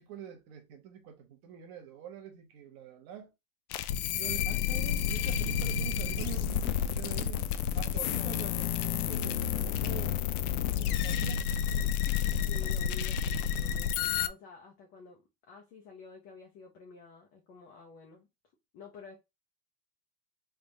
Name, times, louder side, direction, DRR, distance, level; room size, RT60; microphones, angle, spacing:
voice 1, 0.0-3.3 4.0-7.4 7.7-10.2 10.8-11.5, right 10 dB, 35° right, 0.9 m, -45 dB
sound 1, 3.7-14.3, left 9 dB, 80° left, 0.5 m, -30 dB
voice 2, 12.2-18.3 18.7-19.2, left 4 dB, 25° left, 0.5 m, -51 dB
3.5 x 2.4 x 3.9 m
supercardioid pair, 170°, 44 cm